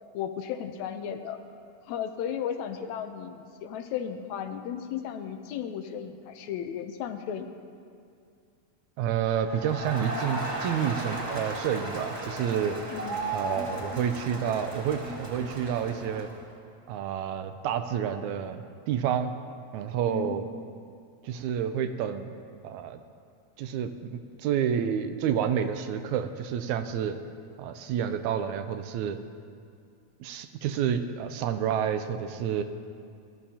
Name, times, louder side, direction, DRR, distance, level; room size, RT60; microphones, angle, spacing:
voice 1, 0.1-1.4 1.9-7.5 12.9-13.3 20.1-20.4, left 8 dB, 80° left, 7 dB, 2.0 m, -35 dB
voice 2, 9.0-12.8 13.3-16.3 16.9-19.3 19.7-20.5 21.2-22.3 22.6-23.0 23.6-27.2 27.6-29.2 30.2-32.6, right 8 dB, 85° right, 9 dB, 2.0 m, -29 dB
Crowd, 9.4-16.4, right 1 dB, 25° right, 2.2 m, -35 dB
21.0 x 12.5 x 2.9 m, 2.3 s
omnidirectional pair, 3.4 m